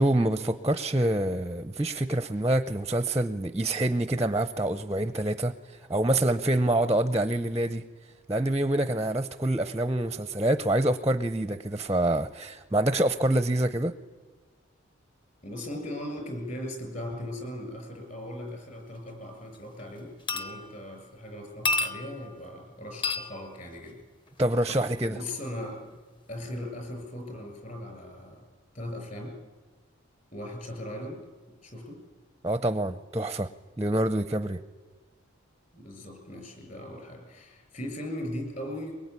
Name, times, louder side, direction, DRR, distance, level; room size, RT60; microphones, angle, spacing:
voice 1, 0.0-5.5 5.9-7.8 8.3-13.9 24.4-25.2 32.4-33.5 33.8-34.6, right 1 dB, 15° right, 11 dB, 0.7 m, -26 dB
voice 2, 15.4-24.0 25.0-25.8 26.3-28.4 28.7-29.4 30.3-31.3 31.6-32.0 35.7-39.0, left 1 dB, 40° left, 3 dB, 6.9 m, -38 dB
sound 1, 19.1-19.2 19.5-19.8 20.3-21.0 21.6-22.4 23.0-23.4 24.7-24.9 25.9-26.0, left 3 dB, 25° left, 1.2 m, -31 dB
23.0 x 22.5 x 9.6 m, 1.4 s
head